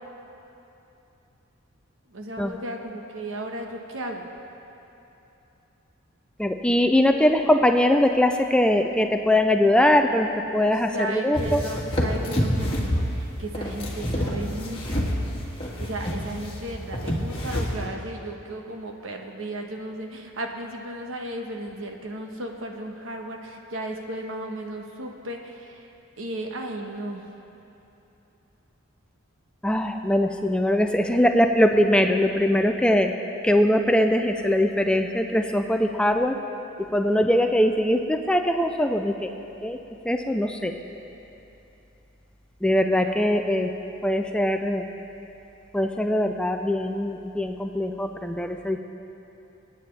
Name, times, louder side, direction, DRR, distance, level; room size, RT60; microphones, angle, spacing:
voice 1, 2.1-4.3 10.5-15.1 15.5-25.9 26.2-27.2 37.1-37.3 43.0-43.1, right 1 dB, 65° right, 2 dB, 1.2 m, -35 dB
voice 2, 6.4-11.6 29.6-33.1 33.4-36.4 36.8-39.3 39.6-39.8 40.0-40.7 42.6-43.7 44.0-44.9 45.7-48.8, left 1 dB, 5° left, 5 dB, 0.4 m, -21 dB
sound 1, 11.3-17.9, equal, 25° left, 1.8 m, -28 dB
26.5 x 9.2 x 3.3 m, 3.0 s
head